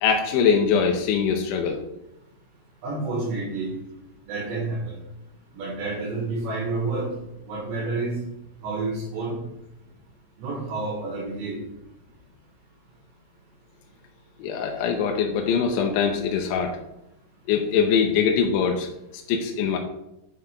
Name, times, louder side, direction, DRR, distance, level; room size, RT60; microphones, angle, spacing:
voice 1, 0.0-1.8 14.4-16.8 17.5-18.9 19.1-19.8, left 6 dB, 90° left, 2 dB, 3.2 m, -22 dB
voice 2, 2.8-3.7 4.3-5.0 5.5-7.1 7.5-8.2 8.6-9.3 10.4-11.6, right 3 dB, 70° right, -6 dB, 4.1 m, -29 dB
9.1 x 5.6 x 3.8 m, 0.87 s
omnidirectional pair, 5.3 m